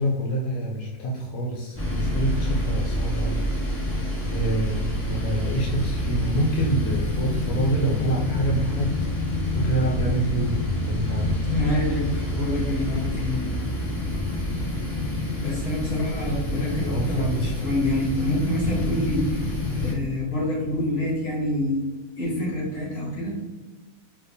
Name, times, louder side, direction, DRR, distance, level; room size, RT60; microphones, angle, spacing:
voice 1, 0.0-11.5 16.9-17.3, right 1 dB, 90° left, -2 dB, 1.1 m, -27 dB
sound 1, 1.7-19.9, left 1 dB, 20° left, 1.4 m, -27 dB
voice 2, 11.5-13.5 15.4-19.5 19.8-21.8 22.2-23.4, left 1 dB, 65° left, -6 dB, 2.0 m, -27 dB
4.9 x 2.3 x 2.6 m, 1.2 s
omnidirectional pair, 1.6 m